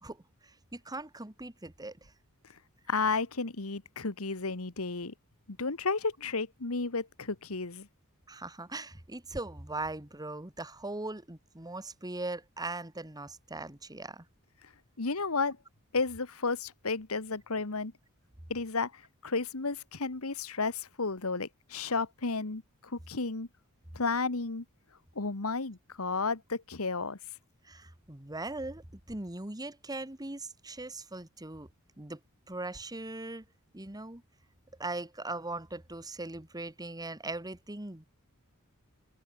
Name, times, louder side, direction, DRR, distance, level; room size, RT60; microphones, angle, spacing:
voice 1, 0.0-2.1 8.3-14.3 27.6-31.7 32.0-32.2 32.5-33.4 33.7-34.2 34.8-38.1, right 2 dB, 15° right, 1.8 m, -40 dB
voice 2, 2.9-5.1 5.5-7.9 15.0-15.6 15.9-17.9 18.5-23.5 23.9-24.6 25.1-27.2, left 4 dB, 70° left, 1.5 m, -32 dB
head